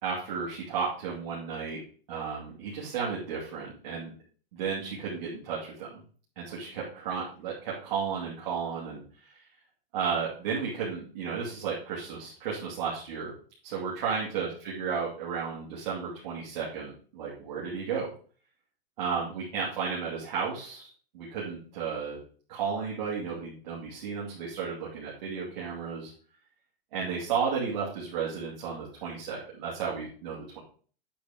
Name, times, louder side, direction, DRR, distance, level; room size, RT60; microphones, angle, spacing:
voice 1, 0.0-1.8 2.1-4.1 4.5-6.0 6.4-9.4 9.9-13.3 13.6-18.1 19.0-20.9 21.1-22.2 22.5-26.1 26.9-30.6, right 6 dB, 45° right, -6 dB, 2.5 m, -33 dB
8.6 x 4.2 x 5.1 m, 0.42 s
supercardioid pair, 175°, 30 cm